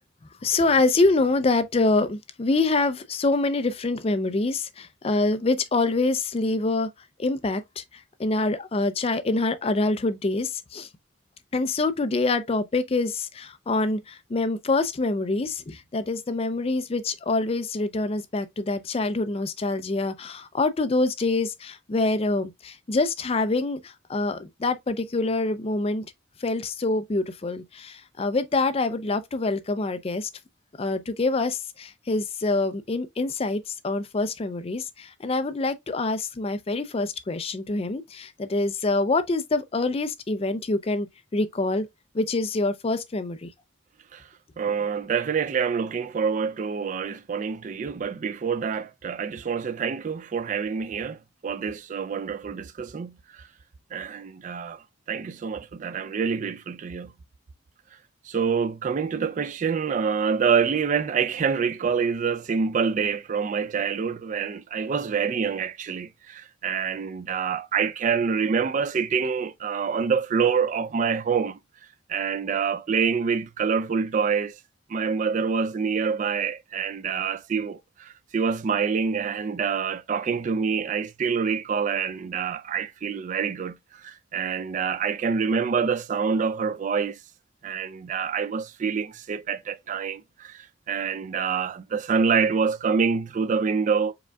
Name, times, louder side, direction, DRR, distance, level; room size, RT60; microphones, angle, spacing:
voice 1, 0.4-6.9 7.2-10.9 11.5-26.1 26.4-30.3 30.8-41.1 41.3-41.9 42.1-43.5, left 3 dB, 30° left, 0.4 m, -25 dB
voice 2, 44.6-51.2 51.4-53.2 53.9-54.8 55.1-57.1 58.3-71.6 72.1-74.6 74.9-87.2 87.6-94.1, right 6 dB, 40° right, 0.3 m, -26 dB
4.9 x 3.5 x 2.2 m
head